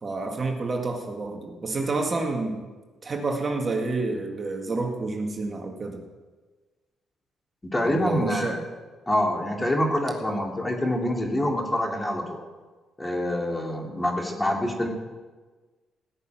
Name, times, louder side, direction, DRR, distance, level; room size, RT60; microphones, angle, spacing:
voice 1, 0.0-2.7 3.0-6.0 7.8-8.6, right 3 dB, 35° right, 2 dB, 1.9 m, -29 dB
voice 2, 7.6-8.6 9.1-12.4 13.0-14.9, left 1 dB, 15° left, 1 dB, 2.9 m, -26 dB
17.0 x 6.7 x 9.2 m, 1.3 s
cardioid pair, 90°, 0 cm